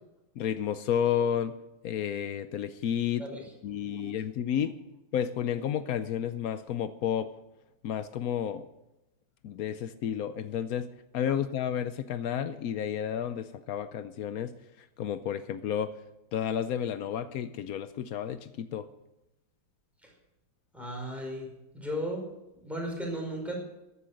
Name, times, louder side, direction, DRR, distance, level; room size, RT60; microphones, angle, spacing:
voice 1, 0.4-1.5 1.8-3.3 3.6-4.7 5.1-7.4 7.8-8.7 9.4-10.9 11.1-16.0 16.3-18.9, left 9 dB, 90° left, 12 dB, 0.7 m, -31 dB
voice 2, 3.7-4.1 20.0-20.1 20.7-22.2 22.5-23.5, equal, ahead, 0 dB, 4.9 m, -36 dB
14.0 x 11.0 x 6.3 m, 0.93 s
omnidirectional pair, 2.3 m